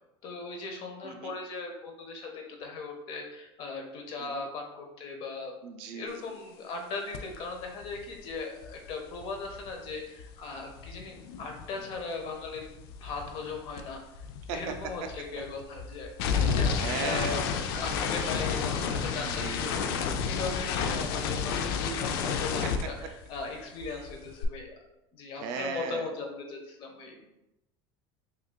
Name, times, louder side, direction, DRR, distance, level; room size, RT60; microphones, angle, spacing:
voice 1, 0.2-5.5 5.9-12.7 13.0-14.0 14.5-19.8 20.2-24.7 25.1-27.2, left 3 dB, 45° left, 2 dB, 0.8 m, -38 dB
voice 2, 1.0-1.3 4.2-4.5 5.6-6.4 14.5-14.6 16.8-17.5 19.2-20.0 25.4-26.1, right 4 dB, 65° right, 6 dB, 0.5 m, -37 dB
sound 1, 7.1-7.4 7.6-12.0 12.3-23.5 23.8-24.4, left 6 dB, 90° left, 0.4 m, -32 dB
5.5 x 2.4 x 2.2 m, 0.92 s
cardioid pair, 155°, 12 cm